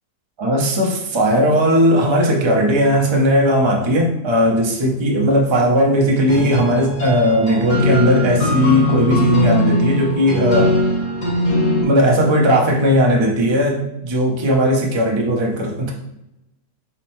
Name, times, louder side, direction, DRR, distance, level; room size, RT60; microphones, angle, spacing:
voice 1, 0.4-10.7 11.8-15.9, equal, 40° right, 0 dB, 0.4 m, -17 dB
sound 1, 6.3-11.8, left 1 dB, 60° left, 1.9 m, -19 dB
4.2 x 3.6 x 3.1 m, 0.87 s
omnidirectional pair, 1.6 m